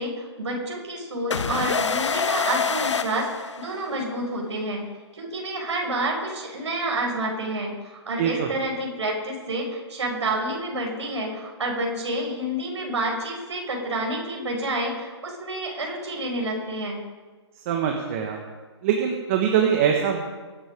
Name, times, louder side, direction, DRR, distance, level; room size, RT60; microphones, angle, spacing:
voice 1, 0.0-3.3 3.6-4.8 5.1-17.0, right 1 dB, 75° right, 0 dB, 5.2 m, -29 dB
sound 1, 1.3-4.1, left 5 dB, 80° left, 0.9 m, -26 dB
voice 2, 8.2-8.5 17.6-18.4 18.8-20.2, right 8 dB, 30° right, 2 dB, 1.5 m, -23 dB
23.0 x 7.9 x 5.3 m, 1.3 s
hypercardioid pair, 155°, 15 cm